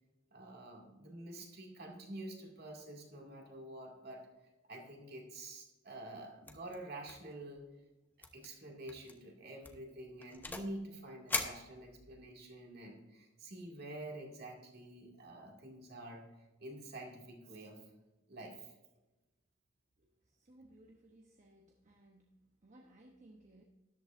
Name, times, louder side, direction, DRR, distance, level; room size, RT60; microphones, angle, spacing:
voice 1, 0.3-4.3 4.7-7.7 8.3-17.8 18.3-18.7, right 1 dB, 55° right, 0 dB, 2.4 m, -48 dB
sound 1, 6.5-6.8 7.0-7.3 7.6-7.7 8.2-8.5 8.9-9.1 9.6-10.8 11.3-12.3, left 2 dB, 10° left, 0.8 m, -40 dB
voice 2, 20.0-23.6, right 1 dB, 40° right, 1 dB, 0.9 m, -61 dB
13.0 x 11.5 x 2.6 m, 1.1 s
head